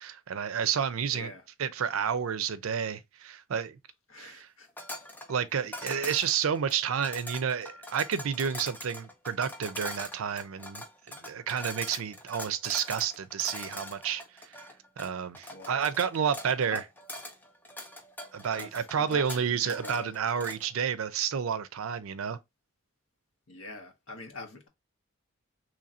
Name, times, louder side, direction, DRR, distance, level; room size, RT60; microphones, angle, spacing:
voice 1, 0.0-1.3 1.6-3.8 4.2-4.5 5.3-14.2 15.0-16.8 18.3-22.4, right 7 dB, 75° right, 0.4 m, -30 dB
voice 2, 1.1-1.4 4.1-4.7 5.6-6.2 15.5-15.9 16.7-16.8 18.6-20.1 23.5-24.7, left 2 dB, 70° left, 0.9 m, -44 dB
sound 1, 4.8-20.7, left 1 dB, 10° left, 0.4 m, -42 dB
3.1 x 2.5 x 4.1 m
head